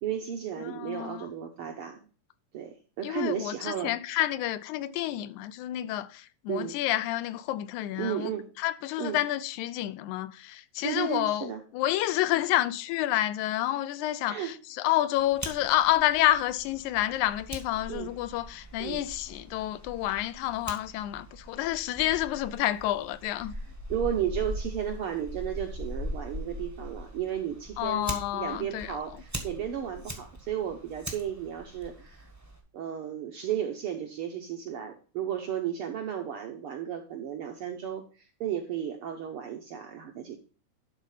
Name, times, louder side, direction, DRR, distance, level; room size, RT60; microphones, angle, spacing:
voice 1, 0.0-2.0 2.5-4.0 6.5-6.8 8.0-8.5 9.0-9.2 10.8-11.6 14.2-14.5 17.9-18.1 18.8-19.0 23.5-23.6 23.9-32.3 32.7-40.4, right 9 dB, 70° right, 1.3 m, -34 dB
voice 2, 0.7-1.3 3.0-8.3 8.6-23.5 27.8-29.0, left 14 dB, 85° left, 2.0 m, -29 dB
Fire, 15.2-32.6, equal, 15° right, 0.5 m, -41 dB
11.0 x 4.1 x 5.5 m
omnidirectional pair, 3.4 m